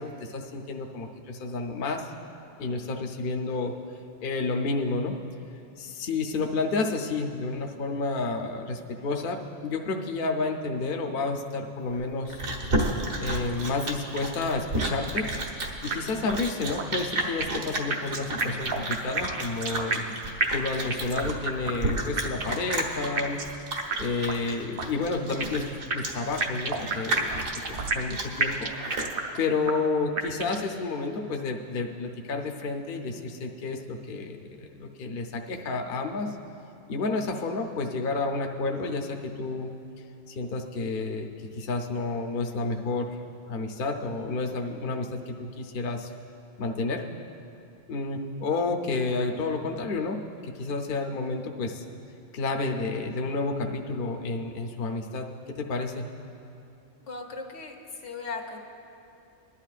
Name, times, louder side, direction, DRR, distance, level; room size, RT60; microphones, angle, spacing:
voice 1, 0.0-2.1 2.6-3.7 4.2-5.2 5.8-12.4 13.2-15.3 15.8-20.0 20.5-23.4 24.0-28.7 29.4-36.4 36.9-39.7 40.3-43.2 43.5-46.1 46.6-47.0 47.9-51.8 52.3-56.1, left 3 dB, 50° left, 2 dB, 0.8 m, -30 dB
Chewing mastication, 11.9-29.1, right 1 dB, 70° right, 1.6 m, -32 dB
sound 1, 15.2-15.6 15.9-16.0 16.3-16.4 16.8-17.6 17.9-20.1 20.4-21.4 21.7-21.8 22.2-22.7 23.2-23.6 23.9-24.0 24.3-24.4 24.8-25.6 25.9-28.1 28.4-29.4 29.7-29.8 30.2-30.7, right 3 dB, 50° right, 0.9 m, -30 dB
voice 2, 57.0-58.6, left 4 dB, 75° left, 2 dB, 1.4 m, -38 dB
21.0 x 11.5 x 2.4 m, 2.6 s
omnidirectional pair, 1.3 m